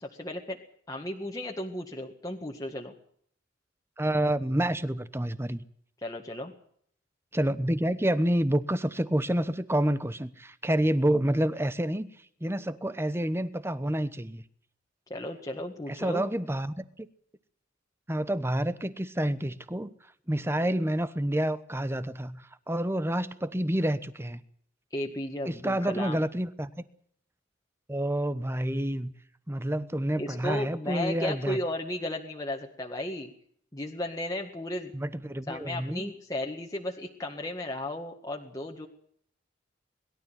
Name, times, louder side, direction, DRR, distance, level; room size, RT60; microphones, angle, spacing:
voice 1, 0.2-0.6 0.9-2.9 6.0-6.5 15.1-16.3 24.9-26.2 30.2-33.3 33.7-34.9 35.5-38.9, left 1 dB, 20° left, 0 dB, 1.9 m, -34 dB
voice 2, 4.0-5.6 7.3-12.1 12.4-14.4 15.9-17.1 18.1-19.9 20.3-24.4 25.4-26.7 27.9-29.1 29.5-31.6 34.9-36.1, right 1 dB, 15° right, 14 dB, 1.1 m, -28 dB
22.5 x 12.5 x 9.3 m, 0.62 s
head